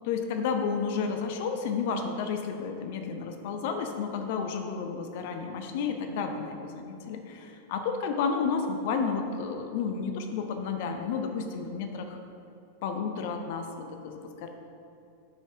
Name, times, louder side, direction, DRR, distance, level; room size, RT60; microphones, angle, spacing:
voice 1, 0.1-12.2 12.8-14.5, left 5 dB, 50° left, 5 dB, 0.6 m, -31 dB
6.1 x 5.3 x 4.7 m, 2.6 s
figure-of-eight pair, 90°, 0 cm